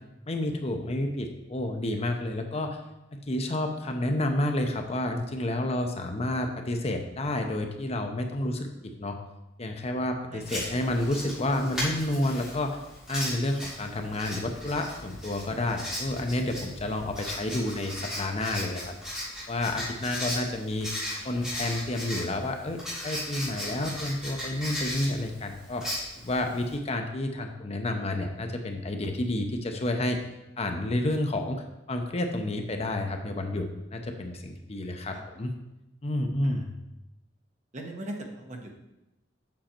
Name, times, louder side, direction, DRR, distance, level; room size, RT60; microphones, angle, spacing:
voice 1, 0.3-2.8 3.1-9.2 9.6-12.8 13.1-18.9 19.5-25.9 26.2-30.2 30.6-31.6 31.9-35.5 36.0-36.7, left 1 dB, 35° left, 4 dB, 0.7 m, -30 dB
Writing, 10.4-26.7, left 1 dB, 5° right, 3.1 m, -37 dB
voice 2, 37.7-38.7, right 1 dB, 40° right, 2 dB, 1.2 m, -39 dB
7.5 x 6.4 x 4.4 m, 0.96 s
head